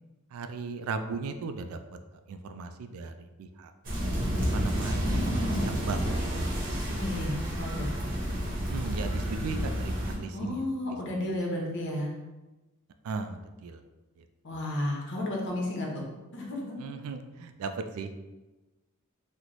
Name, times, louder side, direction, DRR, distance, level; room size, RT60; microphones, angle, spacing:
voice 1, 0.3-1.8 2.3-3.7 4.5-5.2 5.6-6.1 8.7-10.6 11.3-11.4 13.0-13.8 14.2-14.3 16.8-18.1, right 4 dB, 75° right, 9 dB, 0.3 m, -37 dB
sound 1, 3.8-10.2, equal, 40° right, 0.9 m, -30 dB
voice 2, 5.0-5.7 6.9-7.9 10.3-12.1 14.4-16.0 16.3-16.8, left 1 dB, 55° left, -1 dB, 0.8 m, -33 dB
3.0 x 2.1 x 3.8 m, 1.1 s
head